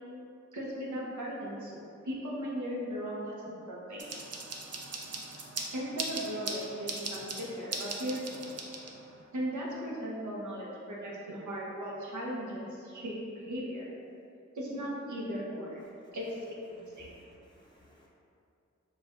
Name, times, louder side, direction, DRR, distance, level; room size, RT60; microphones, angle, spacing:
voice 1, 0.5-4.1 5.7-8.5 9.3-13.9 14.5-15.8 16.1-16.3 16.8-17.2, equal, 90° right, -5 dB, 0.8 m, -37 dB
sound 1, 4.0-9.2, right 3 dB, 55° right, 0.5 m, -39 dB
voice 2, 17.0-18.1, left 1 dB, 15° left, -5 dB, 0.9 m, -60 dB
6.1 x 2.4 x 2.5 m, 2.6 s
wide cardioid pair, 70°, 29 cm